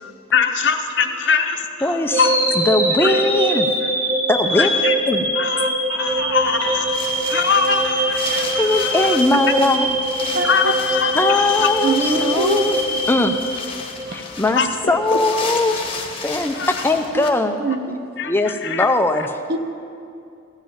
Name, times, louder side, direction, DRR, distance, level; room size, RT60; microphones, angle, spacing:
voice 1, 0.0-2.4 3.0-3.1 4.6-4.9 5.4-9.2 10.4-11.7 14.1-14.7 16.5-16.7 18.2-18.9, left 6 dB, 60° left, 6 dB, 0.8 m, -23 dB
voice 2, 1.8-3.7 4.3-4.7 5.1-5.3 8.6-10.0 11.1-13.4 14.1-14.6 14.9-15.8 16.2-17.6 18.2-19.3, left 2 dB, 10° left, 6 dB, 0.5 m, -20 dB
sound 1, 2.1-14.2, right 1 dB, 75° right, 3.0 m, -22 dB
Wind, 6.1-17.3, left 4 dB, 25° left, 1.2 m, -33 dB
voice 3, 10.3-10.7 11.8-12.7 17.1-17.2 17.6-18.0 19.5-19.6, right 2 dB, 50° right, 7 dB, 0.8 m, -22 dB
15.5 x 5.3 x 8.8 m, 2.5 s
head